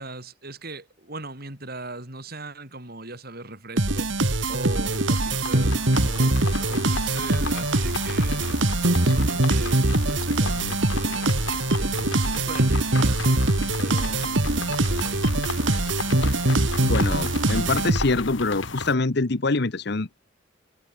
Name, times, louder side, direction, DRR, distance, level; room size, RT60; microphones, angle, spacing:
voice 1, 0.0-4.2 4.5-8.6 8.9-11.4 11.8-13.4 13.8-15.9, right 2 dB, 50° right, 6.4 m, -39 dB
sound 1, 3.8-18.3, right 2 dB, 70° right, 2.2 m, -23 dB
sound 2, 4.0-18.9, left 4 dB, 80° left, 2.5 m, -35 dB
voice 2, 16.8-20.2, left 3 dB, 60° left, 1.0 m, -25 dB
head